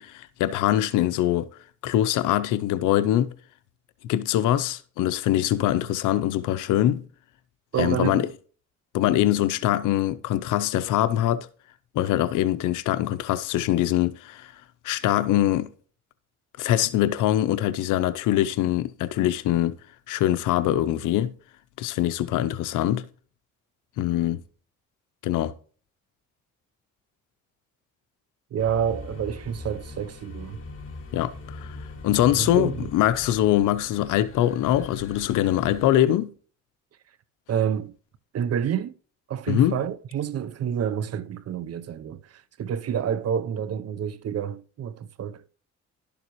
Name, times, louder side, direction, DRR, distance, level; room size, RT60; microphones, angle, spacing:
voice 1, 0.0-1.5 1.8-3.3 4.0-7.1 7.8-8.3 8.9-11.5 11.9-14.5 14.8-15.7 16.6-19.7 20.1-21.3 21.8-23.1 24.0-24.4 25.2-25.5 31.1-31.8 32.0-36.3 39.5-39.8, left 13 dB, 90° left, 0.7 m, -23 dB
voice 2, 7.7-8.3 28.5-30.6 32.3-32.9 37.5-38.0 38.3-38.9 39.3-42.2 42.6-45.4, right 8 dB, 55° right, 0.7 m, -28 dB
sound 1, 28.6-35.9, left 3 dB, 45° left, 2.3 m, -40 dB
11.5 x 6.9 x 3.0 m
cardioid pair, 90°, 30 cm